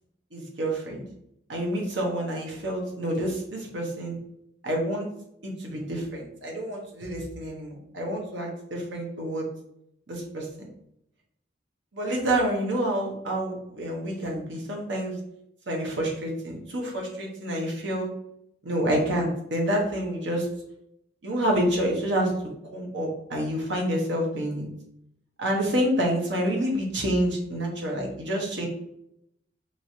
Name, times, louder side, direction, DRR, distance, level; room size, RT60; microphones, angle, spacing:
voice 1, 0.3-1.0 1.5-4.2 4.6-5.1 5.4-9.5 10.1-10.5 11.9-15.1 15.7-18.1 18.6-20.5 21.2-22.3 22.6-24.7 25.4-28.7, right 1 dB, 75° right, -1 dB, 0.9 m, -28 dB
3.1 x 3.0 x 2.7 m, 0.76 s
head